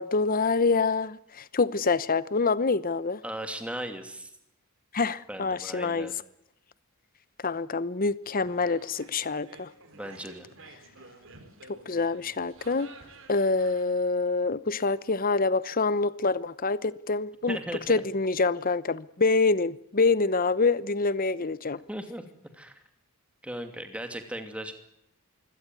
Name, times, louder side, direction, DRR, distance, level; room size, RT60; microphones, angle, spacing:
voice 1, 0.0-3.2 4.9-6.1 7.4-9.7 11.7-12.9 13.3-17.6 17.9-21.8, left 3 dB, 40° left, 0.9 m, -26 dB
voice 2, 3.2-4.3 5.3-6.1 9.9-10.5 17.5-18.0 21.9-22.2 22.5-22.8 23.4-24.7, right 1 dB, 5° right, 2.6 m, -37 dB
sound 1, 8.2-13.9, right 3 dB, 60° right, 3.9 m, -52 dB
24.5 x 17.0 x 9.6 m
head